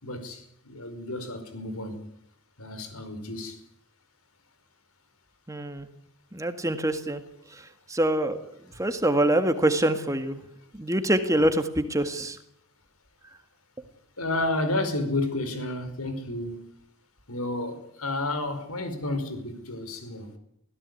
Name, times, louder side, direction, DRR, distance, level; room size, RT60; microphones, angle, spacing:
voice 1, 0.0-2.0 2.6-3.6 14.2-16.6 17.3-20.3, left 2 dB, 85° left, 4.9 m, -31 dB
voice 2, 5.5-5.9 6.3-7.2 7.9-8.4 8.8-10.4 10.8-12.4, right 1 dB, 15° right, 1.7 m, -25 dB
24.5 x 17.0 x 9.6 m
head